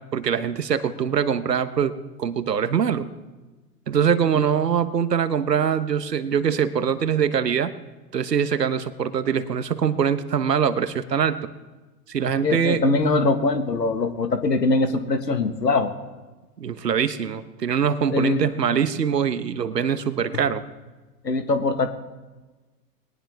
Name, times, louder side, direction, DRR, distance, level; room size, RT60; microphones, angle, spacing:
voice 1, 0.1-1.9 2.2-3.1 3.9-7.7 8.1-11.5 12.1-12.8 16.6-20.6, right 7 dB, 75° right, 12 dB, 1.2 m, -23 dB
voice 2, 12.4-15.9 18.1-18.5 21.2-21.9, left 3 dB, 80° left, 9 dB, 1.7 m, -22 dB
20.5 x 19.0 x 3.5 m, 1.2 s
figure-of-eight pair, 105°, 49 cm